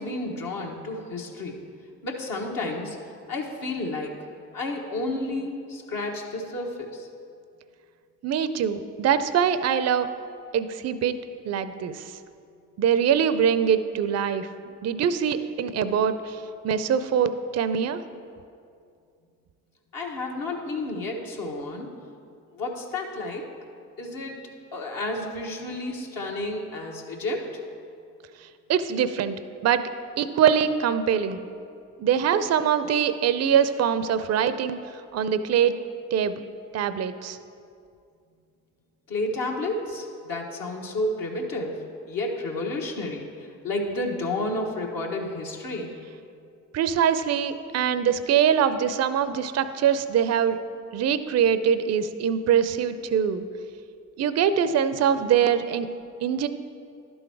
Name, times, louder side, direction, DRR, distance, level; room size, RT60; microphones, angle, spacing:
voice 1, 0.0-1.6 2.0-3.0 3.3-4.1 4.5-7.1 19.9-21.9 22.5-23.4 24.0-24.4 24.7-27.5 39.1-41.8 42.1-43.2 43.6-45.9, left 2 dB, 60° left, 0 dB, 1.2 m, -31 dB
voice 2, 8.2-10.1 10.5-11.2 11.4-12.2 12.8-14.5 14.8-18.0 28.7-29.4 29.6-29.8 30.2-31.4 32.0-34.8 35.1-35.7 36.1-36.4 36.7-37.4 46.7-50.6 50.9-53.4 54.2-55.9 56.2-56.5, right 8 dB, 45° right, 12 dB, 0.5 m, -23 dB
11.0 x 3.9 x 4.7 m, 2.4 s
hypercardioid pair, 45°, 39 cm